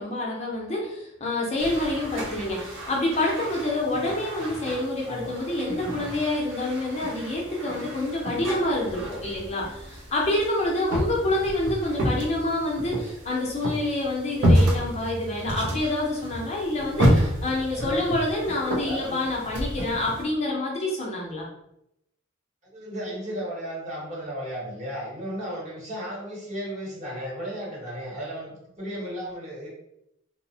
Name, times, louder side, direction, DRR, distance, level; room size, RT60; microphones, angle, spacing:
voice 1, 0.0-21.4, left 1 dB, 35° left, -2 dB, 0.5 m, -27 dB
sound 1, 1.6-20.2, equal, 70° right, 0.5 m, -29 dB
voice 2, 17.7-18.2 18.8-19.2 22.7-29.7, equal, 40° right, -5 dB, 1.0 m, -34 dB
2.7 x 2.0 x 2.7 m, 0.81 s
head